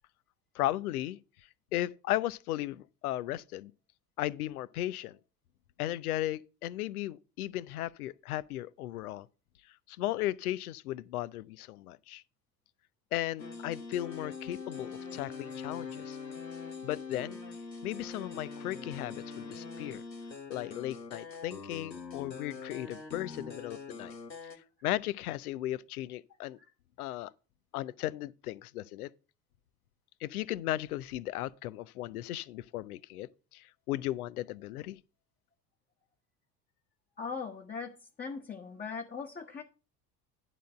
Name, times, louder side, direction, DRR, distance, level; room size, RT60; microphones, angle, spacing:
voice 1, 0.5-1.2 1.7-3.7 4.2-5.2 5.8-9.3 9.9-12.2 13.1-16.2 16.8-17.4 17.8-20.0 20.5-24.1 24.8-26.6 27.0-27.3 27.7-29.1 30.2-35.0, left 14 dB, 60° left, 0.6 m, -36 dB
sound 1, 13.4-24.6, left 4 dB, 90° left, 1.1 m, -43 dB
voice 2, 37.2-39.6, left 5 dB, 20° left, 1.2 m, -40 dB
11.0 x 3.9 x 7.5 m
figure-of-eight pair, 75°, 50 cm